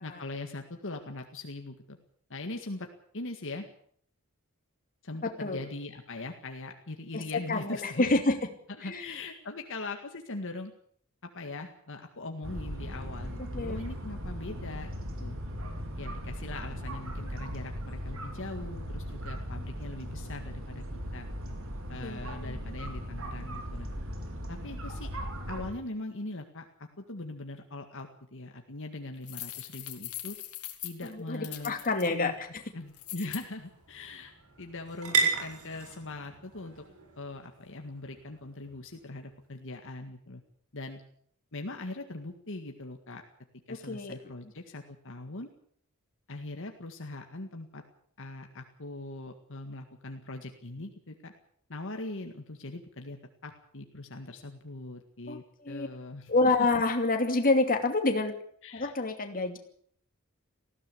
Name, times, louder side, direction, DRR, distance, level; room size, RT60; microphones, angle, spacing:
voice 1, 0.0-2.0 2.3-2.9 3.1-3.7 5.0-8.2 8.7-10.7 11.2-14.9 15.2-15.4 16.0-20.8 21.1-21.3 21.9-23.9 24.5-25.1 25.5-30.4 30.8-31.8 32.0-32.3 32.7-34.3 34.6-36.8 37.2-40.4 40.7-41.0 41.5-43.2 43.7-45.5 46.3-47.8 48.2-51.3 51.7-56.7 58.6-59.0, left 2 dB, 60° left, 4 dB, 1.9 m, -41 dB
voice 2, 7.5-8.4 8.8-9.1 13.5-13.9 22.0-22.6 31.0-32.3 43.7-44.1 44.4-44.5 55.3-55.9 56.3-58.4 58.7-59.6, left 3 dB, 40° left, 5 dB, 2.8 m, -28 dB
sound 1, 12.4-25.7, equal, 65° right, 3.8 m, -38 dB
sound 2, 29.2-32.1 32.9-33.4, left 15 dB, 80° left, 2.7 m, -41 dB
sound 3, 32.0-39.4, right 4 dB, 85° right, 7.6 m, -36 dB
19.5 x 16.0 x 8.5 m, 0.64 s
head